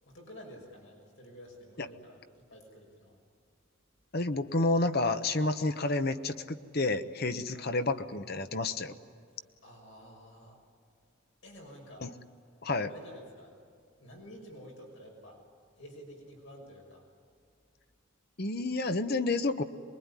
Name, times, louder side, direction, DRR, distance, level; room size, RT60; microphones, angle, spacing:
voice 1, 0.0-3.2 7.5-7.7 9.6-10.6 11.4-12.1 12.9-13.5 14.0-15.4 15.8-17.0, equal, 65° left, 0 dB, 6.0 m, -50 dB
voice 2, 4.1-8.9 12.0-12.1 12.6-12.9 18.4-19.6, left 2 dB, 50° left, 10 dB, 1.0 m, -30 dB
23.5 x 22.0 x 9.9 m, 2.3 s
head